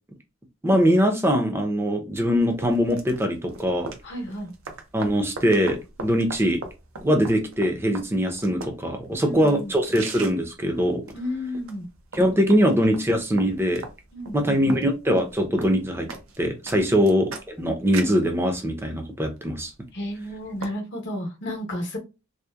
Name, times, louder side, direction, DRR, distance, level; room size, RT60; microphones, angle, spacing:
voice 1, 0.6-3.9 4.9-6.6 7.0-11.0 12.1-13.8 14.3-16.1 16.4-19.7, equal, 10° right, 0.5 m, -22 dB
sound 1, 2.1-20.7, right 3 dB, 80° right, 0.6 m, -42 dB
voice 2, 4.0-4.5 9.2-9.7 11.1-11.9 14.1-14.8 19.9-22.0, left 1 dB, 60° left, 0.8 m, -32 dB
2.8 x 2.1 x 2.2 m
head